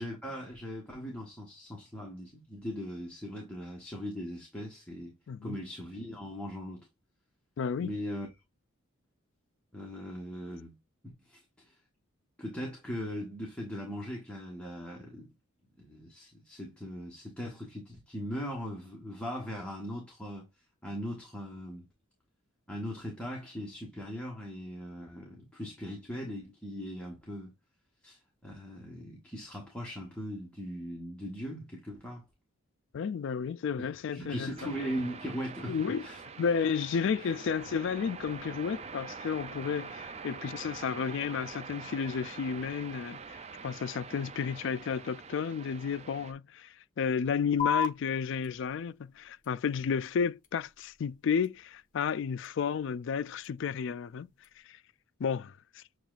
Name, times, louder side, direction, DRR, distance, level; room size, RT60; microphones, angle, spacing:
voice 1, 0.0-5.1 5.4-6.9 7.8-8.3 9.7-10.8 11.0-11.8 12.4-15.3 15.8-20.5 20.8-21.9 22.7-27.5 28.0-32.2 34.1-35.8 36.0-36.2 37.2-37.3, equal, 5° left, 1.2 m, -39 dB
voice 2, 7.6-7.9 32.9-34.7 35.7-36.0 36.4-54.3 54.7-54.8 55.2-55.8, left 6 dB, 60° left, 0.3 m, -32 dB
sound 1, 34.6-46.3, right 5 dB, 30° right, 0.4 m, -45 dB
sound 2, 47.6-54.6, left 6 dB, 40° left, 0.8 m, -39 dB
7.3 x 3.0 x 2.4 m
head